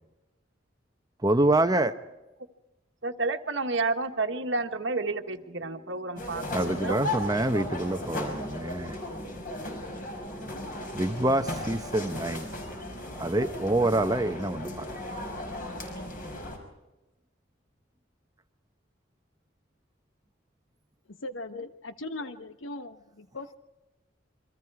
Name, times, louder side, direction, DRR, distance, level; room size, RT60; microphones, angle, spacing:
voice 1, 1.2-2.0 6.5-9.0 10.9-12.5 13.2-14.9, right 1 dB, 20° right, 9 dB, 0.8 m, -26 dB
voice 2, 3.0-6.5 6.8-6.9, right 3 dB, 70° right, 5 dB, 1.5 m, -30 dB
sound 1, 5.1-15.1, left 2 dB, 25° left, 4.6 m, -53 dB
sound 2, 6.2-16.6, left 1 dB, 45° left, 5.3 m, -36 dB
voice 3, 21.1-23.6, left 2 dB, 85° left, 10 dB, 1.1 m, -39 dB
28.0 x 24.5 x 4.8 m, 1.0 s
head